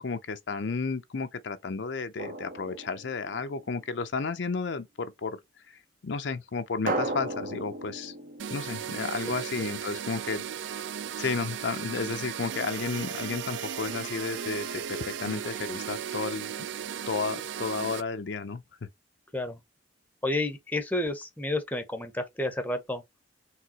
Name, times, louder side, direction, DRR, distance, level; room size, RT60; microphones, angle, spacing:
voice 1, 0.0-5.4 6.0-8.1 8.5-10.5 11.2-16.5 17.1-18.6, left 4 dB, 65° left, 0.6 m, -32 dB
Drum, 2.2-3.7 6.9-9.6, right 2 dB, 45° right, 0.8 m, -35 dB
sound 1, 8.4-18.0, right 8 dB, 75° right, 0.4 m, -36 dB
voice 2, 20.2-23.0, left 2 dB, 10° left, 0.7 m, -30 dB
4.7 x 3.3 x 2.9 m
head